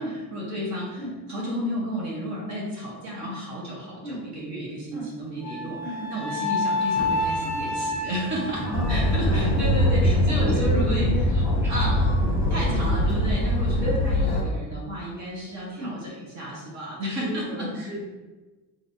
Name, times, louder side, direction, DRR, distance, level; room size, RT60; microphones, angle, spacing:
voice 1, 0.0-1.0 1.3-11.1 11.7-12.1 12.5-18.0, equal, 40° right, -3 dB, 0.8 m, -32 dB
Wind instrument woodwind instrument, 5.4-9.8, left 2 dB, 25° left, 0.4 m, -29 dB
voice 2, 5.8-6.2 8.6-9.9 10.3-11.9 12.2-12.7 13.8-14.4 15.8-16.0 17.0-18.0, equal, 5° right, -8 dB, 0.8 m, -33 dB
sound 1, 7.0-13.7, right 1 dB, 25° right, 1.0 m, -37 dB
sound 2, 8.7-14.4, left 1 dB, 50° left, 0.8 m, -22 dB
4.7 x 2.6 x 2.6 m, 1.2 s
cardioid pair, 175°, 41 cm